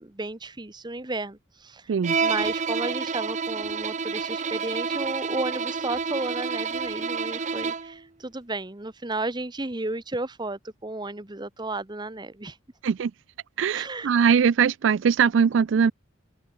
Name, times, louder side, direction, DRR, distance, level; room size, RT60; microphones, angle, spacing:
voice 1, 0.0-1.9 2.2-12.6 13.7-14.1, right 2 dB, 20° right, 1.1 m, -33 dB
Bowed string instrument, 2.0-8.0, right 5 dB, 35° right, 0.7 m, -29 dB
voice 2, 13.6-15.9, right 7 dB, 65° right, 0.4 m, -21 dB
head